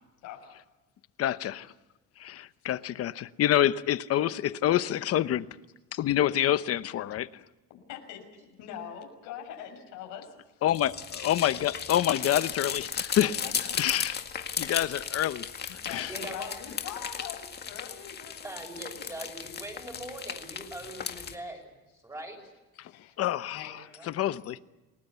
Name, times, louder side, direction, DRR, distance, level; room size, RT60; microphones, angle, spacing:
voice 1, 1.2-1.7 2.2-5.5 5.9-7.4 10.6-13.3 13.7-14.2 14.6-15.4 15.9-16.1 23.2-23.8 24.1-24.6, left 12 dB, 50° left, 14 dB, 1.0 m, -27 dB
voice 2, 7.7-10.6 13.2-14.0 15.8-18.5 22.7-23.1 23.5-23.7, left 9 dB, 85° left, 3 dB, 6.3 m, -43 dB
sound 1, 10.7-21.3, left 7 dB, 30° left, 2.0 m, -36 dB
voice 3, 16.1-16.5 18.4-22.4 23.9-24.2, right 1 dB, 10° right, 3 dB, 6.8 m, -42 dB
29.0 x 19.0 x 8.3 m, 1.1 s
cardioid pair, 145°, 31 cm